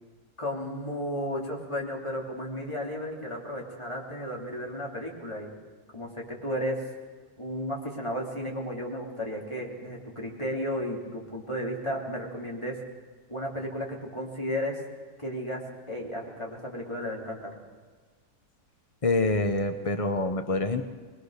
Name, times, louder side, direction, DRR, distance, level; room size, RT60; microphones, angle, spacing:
voice 1, 0.4-5.5 5.9-6.8 7.4-12.8 13.3-14.8 15.2-15.6 15.9-17.5, equal, 15° left, -2 dB, 3.4 m, -33 dB
voice 2, 19.0-20.8, left 2 dB, 45° left, 8 dB, 0.4 m, -26 dB
22.5 x 21.0 x 6.6 m, 1.5 s
omnidirectional pair, 2.0 m